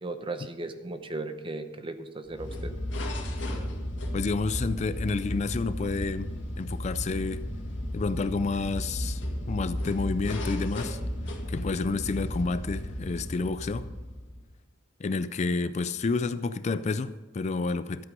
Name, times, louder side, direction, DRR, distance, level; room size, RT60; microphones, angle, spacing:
voice 1, 0.0-2.7, right 2 dB, 25° right, 8 dB, 0.8 m, -36 dB
sound 1, 2.3-14.5, left 1 dB, 70° left, 2.1 m, -34 dB
voice 2, 4.1-7.4 7.9-11.0 11.5-13.9 15.0-18.1, left 4 dB, 35° left, 13 dB, 0.4 m, -30 dB
12.5 x 8.4 x 5.3 m, 1.2 s
head